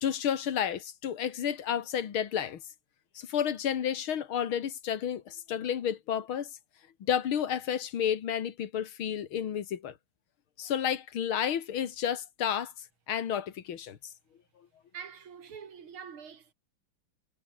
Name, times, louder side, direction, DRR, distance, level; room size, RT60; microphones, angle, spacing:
voice 1, 0.0-2.6 3.2-6.5 7.0-9.9 10.6-12.7 13.1-14.0, left 9 dB, 80° left, 2.5 m, -31 dB
voice 2, 14.9-16.5, right 7 dB, 90° right, 3.1 m, -45 dB
omnidirectional pair, 2.2 m